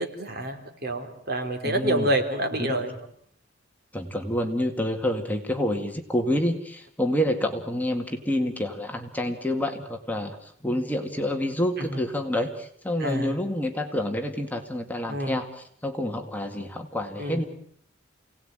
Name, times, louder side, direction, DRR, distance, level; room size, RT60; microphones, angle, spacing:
voice 1, 0.0-2.9 11.8-12.0 13.0-13.3 15.1-15.4 17.2-17.4, right 1 dB, 50° right, 4 dB, 3.8 m, -28 dB
voice 2, 1.6-2.1 2.6-2.8 3.9-17.5, left 1 dB, 10° left, 4 dB, 2.1 m, -28 dB
28.0 x 18.5 x 9.1 m, 0.66 s
head